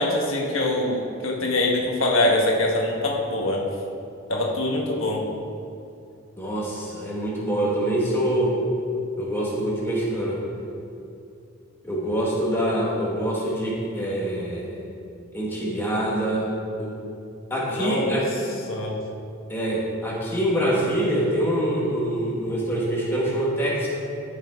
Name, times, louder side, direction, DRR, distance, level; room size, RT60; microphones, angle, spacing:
voice 1, 0.0-3.6 4.3-5.2 17.7-18.2 18.7-19.0, left 1 dB, 85° left, -1 dB, 1.3 m, -24 dB
voice 2, 6.4-8.6 9.2-10.4 11.8-14.7 15.3-16.5 16.8-16.9 17.5-18.2 19.5-23.9, right 1 dB, 10° left, -5 dB, 1.5 m, -25 dB
12.5 x 5.7 x 3.6 m, 2.6 s
head